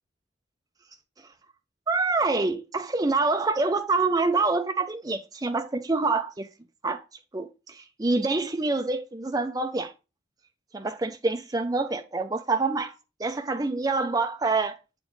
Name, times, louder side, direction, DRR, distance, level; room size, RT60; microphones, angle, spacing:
voice 1, 1.9-6.5 6.8-7.0 7.3-9.9 10.7-14.8, right 3 dB, 20° right, 0.5 m, -26 dB
8.0 x 4.3 x 3.1 m
head